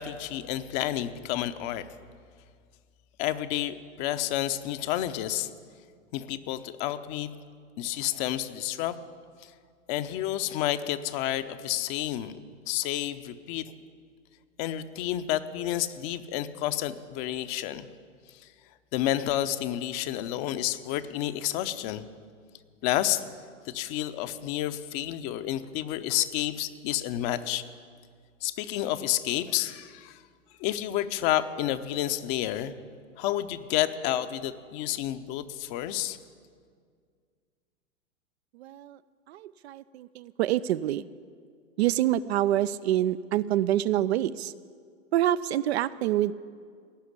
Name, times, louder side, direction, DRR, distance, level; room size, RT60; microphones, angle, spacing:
voice 1, 0.0-1.8 3.2-5.5 6.1-7.3 7.8-8.9 9.9-12.3 12.7-13.7 14.6-17.9 18.9-22.1 22.8-23.2 23.7-27.6 28.4-30.2 30.6-32.7 33.2-36.2, left 13 dB, 35° left, 11 dB, 0.7 m, -30 dB
voice 2, 38.5-39.0 39.3-41.0 41.8-44.5 45.1-46.3, right 13 dB, 55° right, 15 dB, 0.5 m, -26 dB
17.0 x 5.8 x 9.7 m, 2.1 s
hypercardioid pair, 110°, 40 cm